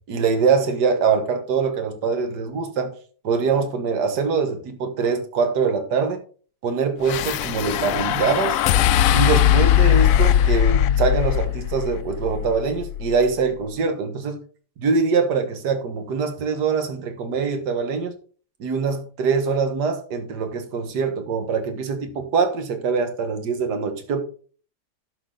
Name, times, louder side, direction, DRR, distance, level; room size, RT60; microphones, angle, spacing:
voice 1, 0.1-2.9 3.2-6.2 6.6-8.6 9.1-14.4 14.8-18.1 18.6-24.2, right 5 dB, 65° right, 1.9 m, -23 dB
sound 1, 7.0-13.4, left 11 dB, 80° left, 0.7 m, -20 dB
11.0 x 6.6 x 3.8 m
omnidirectional pair, 1.9 m